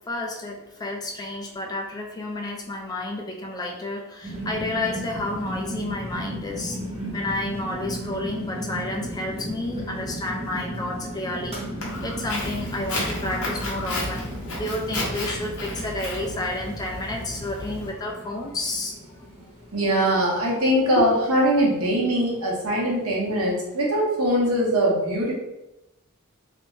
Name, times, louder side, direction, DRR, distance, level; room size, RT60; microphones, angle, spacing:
voice 1, 0.1-6.8 7.1-11.6 12.0-14.3 14.6-19.0, left 2 dB, 20° left, 1 dB, 0.4 m, -31 dB
sound 1, 4.2-24.0, equal, 30° right, 0.8 m, -36 dB
Walk footsteps, 11.8-17.9, left 1 dB, 70° left, 0.8 m, -32 dB
voice 2, 19.7-25.3, equal, 85° right, -3 dB, 0.9 m, -22 dB
2.5 x 2.1 x 3.1 m, 0.96 s
head